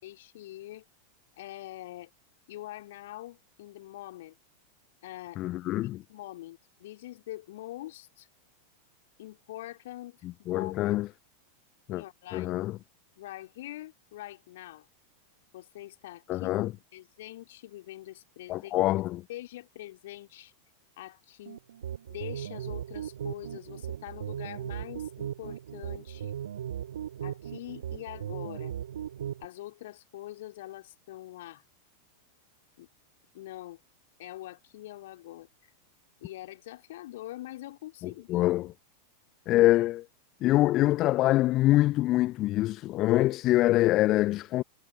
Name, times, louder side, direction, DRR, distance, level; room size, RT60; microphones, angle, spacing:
voice 1, 0.0-0.8 1.4-2.1 2.5-4.4 5.0-5.4 6.1-8.3 9.2-11.0 11.9-12.6 13.2-14.9 15.5-18.8 19.3-20.5 21.0-21.6 22.1-26.4 27.2-28.7 29.4-31.6 32.8-32.9 33.3-33.8 34.2-35.5 36.2-38.5, left 15 dB, 55° left, 2.6 m, -44 dB
voice 2, 5.4-6.0 10.5-11.1 11.9-12.0 12.3-12.8 16.3-16.7 18.5-19.2 38.0-38.7 39.5-40.1 40.4-44.6, left 16 dB, 35° left, 0.7 m, -25 dB
sound 1, 21.5-29.5, right 10 dB, 65° right, 3.2 m, -37 dB
figure-of-eight pair, 90°, 0 cm